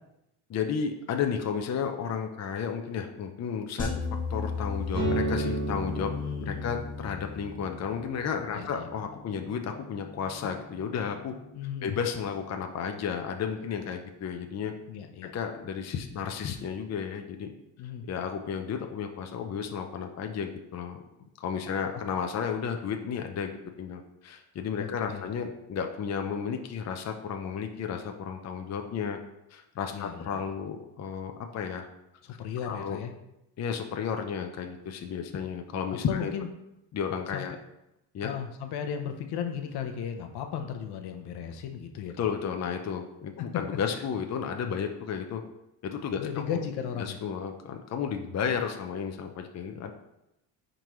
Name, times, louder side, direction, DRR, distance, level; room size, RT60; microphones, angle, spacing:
voice 1, 0.5-4.0 4.3-6.1 6.4-11.3 11.8-14.7 15.3-17.5 18.0-21.0 21.4-29.2 29.5-31.9 32.6-33.0 33.6-36.3 36.9-37.5 38.1-38.3 42.2-45.4 45.8-46.2 46.5-46.6 46.9-49.9, left 7 dB, 40° left, 4 dB, 0.7 m, -33 dB
sound 1, 3.8-8.1, left 4 dB, 20° left, 1.2 m, -35 dB
sound 2, 4.9-12.5, right 2 dB, 25° right, 2.5 m, -37 dB
voice 2, 6.0-6.8 8.5-8.9 11.5-11.9 14.9-15.3 17.8-18.0 24.8-25.3 29.9-30.4 32.2-33.1 36.1-36.5 37.3-37.4 38.2-42.3 46.2-47.2, left 8 dB, 70° left, 6 dB, 0.9 m, -36 dB
10.0 x 3.9 x 3.1 m, 0.87 s
cardioid pair, 105°, 41 cm